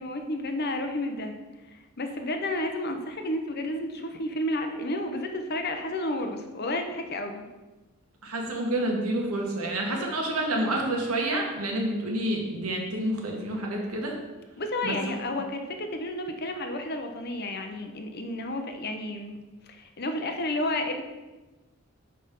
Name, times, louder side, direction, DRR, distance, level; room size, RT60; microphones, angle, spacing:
voice 1, 0.0-1.3 1.7-7.5 14.6-19.4 19.7-21.0, left 1 dB, 45° left, 5 dB, 0.8 m, -31 dB
voice 2, 8.2-14.1 14.8-15.0, right 1 dB, 85° right, 0 dB, 1.7 m, -28 dB
6.5 x 5.4 x 5.4 m, 1.2 s
head